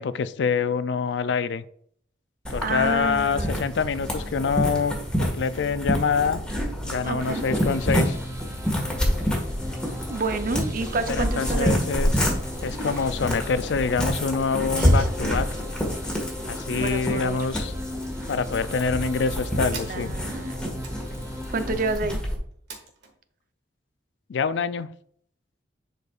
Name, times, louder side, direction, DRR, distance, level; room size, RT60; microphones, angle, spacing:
voice 1, 0.0-1.6 2.5-6.4 6.8-8.2 11.1-12.3 12.6-15.5 16.5-17.7 18.3-20.1 24.3-24.9, left 5 dB, 70° left, 14 dB, 0.4 m, -26 dB
sound 1, 2.4-22.4, equal, 5° left, 1.6 m, -27 dB
voice 2, 2.6-3.6 7.0-7.5 10.1-11.8 14.8-15.1 16.8-17.5 19.8-20.6 21.5-22.2, right 3 dB, 50° right, 9 dB, 0.6 m, -29 dB
sound 2, 7.2-22.0, left 1 dB, 15° right, 0.8 m, -39 dB
sound 3, 19.4-23.1, right 5 dB, 65° right, 1.7 m, -45 dB
10.5 x 5.2 x 2.4 m, 0.65 s
head